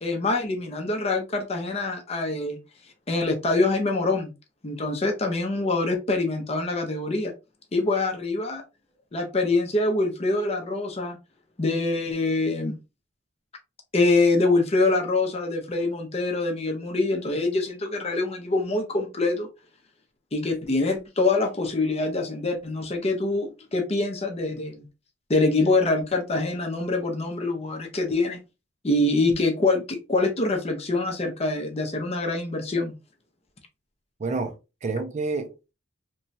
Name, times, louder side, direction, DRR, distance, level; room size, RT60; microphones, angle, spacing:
voice 1, 0.0-2.6 3.1-4.3 4.6-7.3 7.7-8.6 9.1-11.2 11.6-12.8 13.9-19.5 20.3-24.8 25.3-28.4 28.8-32.9, left 2 dB, 30° left, 0.6 m, -25 dB
voice 2, 34.2-35.7, right 3 dB, 35° right, 0.4 m, -30 dB
3.0 x 2.2 x 2.6 m
head